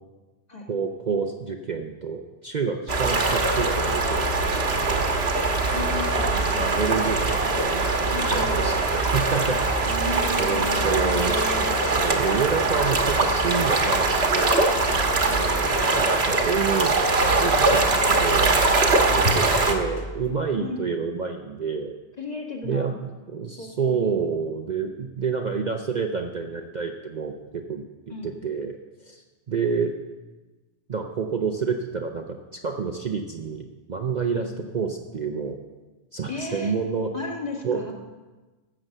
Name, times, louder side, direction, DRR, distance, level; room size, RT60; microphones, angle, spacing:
voice 1, 0.7-5.1 5.9-6.1 6.6-9.9 10.4-11.7 12.0-14.5 15.2-16.9 17.4-18.6 19.1-21.9 22.6-28.8 29.1-29.9 30.9-32.2 32.5-35.6 36.1-37.1 37.6-37.8, right 5 dB, 45° right, 3 dB, 0.8 m, -29 dB
sound 1, 2.9-19.8, right 3 dB, 60° right, 1.6 m, -22 dB
sound 2, 4.8-16.6 17.2-20.3, left 1 dB, 70° left, 1.5 m, -39 dB
voice 2, 5.7-6.8 8.1-8.6 9.9-11.7 15.2-15.5 19.0-19.4 20.6-20.8 22.2-22.9 23.6-24.2 28.1-28.3 34.3-34.5 36.3-36.7 37.1-37.9, left 2 dB, 35° left, 0 dB, 2.0 m, -35 dB
13.5 x 7.8 x 6.6 m, 1.2 s
omnidirectional pair, 1.2 m